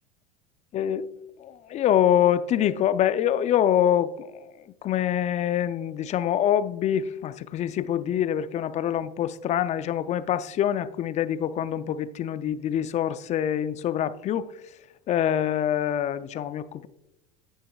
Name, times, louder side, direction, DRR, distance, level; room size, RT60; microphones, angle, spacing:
voice 1, 0.7-1.1 1.4-14.5 15.1-16.9, left 10 dB, 35° left, 0.5 m, -25 dB
9.3 x 8.0 x 2.3 m
hypercardioid pair, 95°, 19 cm